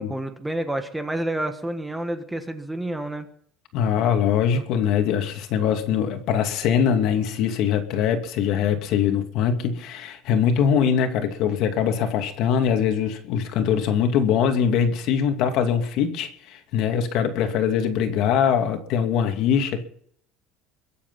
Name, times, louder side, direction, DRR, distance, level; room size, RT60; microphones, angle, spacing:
voice 1, 0.0-3.3, right 1 dB, 5° right, 1.4 m, -29 dB
voice 2, 3.7-19.8, left 8 dB, 55° left, 2.6 m, -22 dB
22.5 x 8.6 x 5.8 m
cardioid pair, 155°, 0 cm